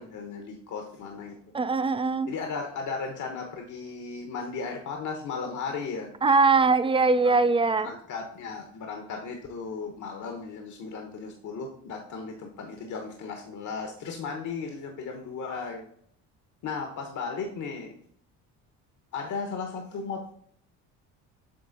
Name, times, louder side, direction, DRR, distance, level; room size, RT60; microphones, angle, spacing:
voice 1, 0.0-1.4 2.3-6.1 7.2-7.4 7.8-15.8 16.6-17.9 19.1-20.3, left 5 dB, 55° left, 4 dB, 1.0 m, -35 dB
voice 2, 1.5-2.3 6.2-7.9, right 4 dB, 15° right, 13 dB, 0.3 m, -21 dB
7.8 x 3.3 x 3.9 m, 0.63 s
cardioid pair, 90°, 35 cm